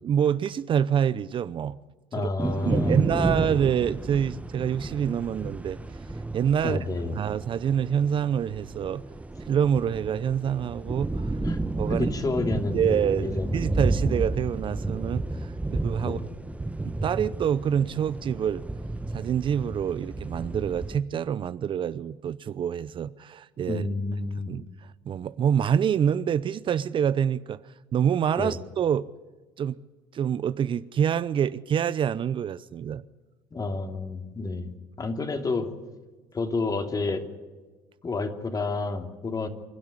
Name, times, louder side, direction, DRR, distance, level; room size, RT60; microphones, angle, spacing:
voice 1, 0.0-1.8 2.2-2.3 2.6-6.0 6.3-6.8 7.1-9.0 9.4-11.3 11.8-12.1 12.7-16.3 16.8-18.6 19.1-23.8 24.5-29.1 29.6-29.8 30.1-33.0, right 8 dB, 40° right, 0.7 m, -26 dB
voice 2, 2.1-3.6 6.6-7.2 11.4-11.6 11.9-13.8 16.0-16.2 23.7-24.5 28.4-28.6 33.5-35.7 36.3-37.3 38.0-39.5, left 3 dB, 30° left, 2.9 m, -30 dB
sound 1, 2.4-21.0, right 2 dB, 10° right, 1.2 m, -32 dB
27.0 x 12.5 x 9.9 m
hypercardioid pair, 75°, 13 cm